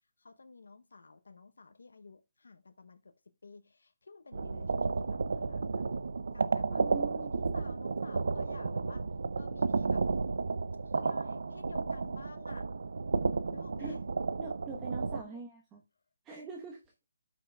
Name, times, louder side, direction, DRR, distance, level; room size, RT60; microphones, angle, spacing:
voice 1, 0.2-3.0 3.4-5.2 5.4-5.6 6.3-6.8 7.2-9.0 9.4-10.0 10.9-12.6 13.5-14.0 15.2-15.4, left 4 dB, 85° left, 0.7 m, -52 dB
sound 1, 4.3-15.2, right 4 dB, 75° right, 0.6 m, -32 dB
voice 2, 6.7-7.3 13.8-13.9 14.4-15.8 16.2-16.8, right 4 dB, 10° right, 1.0 m, -43 dB
13.0 x 6.0 x 2.3 m
hypercardioid pair, 165°, 0 cm